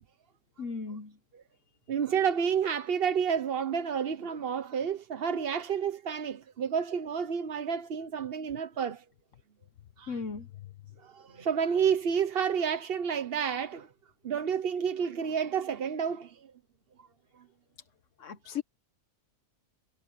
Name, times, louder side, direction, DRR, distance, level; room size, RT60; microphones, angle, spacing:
voice 1, 0.6-1.1 10.1-10.5 18.2-18.6, left 5 dB, 60° left, 1.3 m, -36 dB
voice 2, 1.9-9.0 10.0-10.2 11.0-13.9 14.2-16.5, right 7 dB, 45° right, 1.0 m, -30 dB
omnidirectional pair, 1.5 m